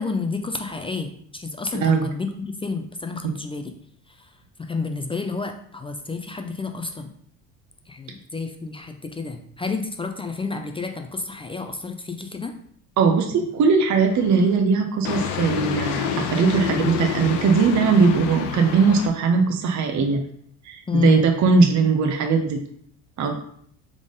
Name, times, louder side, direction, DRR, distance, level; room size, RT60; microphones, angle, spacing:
voice 1, 0.0-3.7 4.1-4.3 4.6-7.1 7.9-12.5 20.9-21.3, left 4 dB, 15° left, 5 dB, 0.3 m, -30 dB
voice 2, 1.7-2.1 13.0-20.2 20.7-22.6 23.2-23.3, right 5 dB, 40° right, 4 dB, 0.8 m, -19 dB
sound 1, 14.0-14.6 15.1-19.1, left 8 dB, 80° left, 0.7 m, -28 dB
3.6 x 3.6 x 3.8 m, 0.64 s
supercardioid pair, 75°, 42 cm